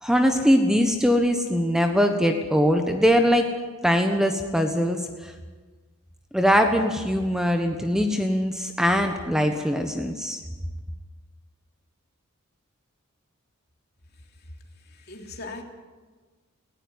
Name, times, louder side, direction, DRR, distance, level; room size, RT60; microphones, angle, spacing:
voice 1, 0.0-3.5 3.8-5.3 6.3-10.4, equal, 5° right, 5 dB, 1.2 m, -22 dB
voice 2, 14.8-15.6, left 3 dB, 50° left, 3 dB, 3.0 m, -40 dB
19.0 x 16.5 x 9.7 m, 1.4 s
head